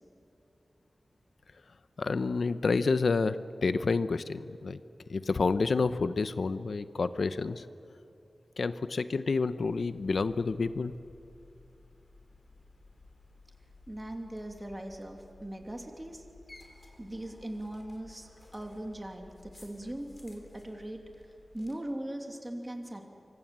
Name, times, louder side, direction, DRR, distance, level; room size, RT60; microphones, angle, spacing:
voice 1, 2.0-3.4 3.6-4.8 5.1-7.7 8.6-10.9, left 4 dB, 75° left, 12 dB, 0.9 m, -29 dB
sound 1, 9.6-21.7, left 2 dB, 35° left, 4.0 m, -56 dB
voice 2, 13.9-16.2 17.0-21.3 21.5-23.1, right 1 dB, 20° right, 3 dB, 2.7 m, -40 dB
25.0 x 24.5 x 7.5 m, 2.7 s
wide cardioid pair, 80°, 0 cm